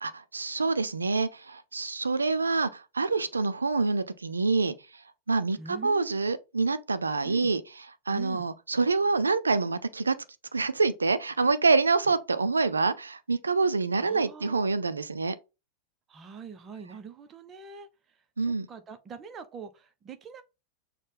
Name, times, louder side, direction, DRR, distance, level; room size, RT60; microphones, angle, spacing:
voice 1, 0.0-5.0 5.3-7.6 8.1-10.1 10.5-15.4 18.4-18.7, right 4 dB, 75° right, 0.4 m, -26 dB
voice 2, 5.6-6.2 7.2-7.5 8.1-8.5 14.0-14.6 16.1-17.9 18.4-20.4, right 6 dB, 25° right, 0.6 m, -43 dB
6.4 x 2.2 x 3.2 m
figure-of-eight pair, 90°, 0 cm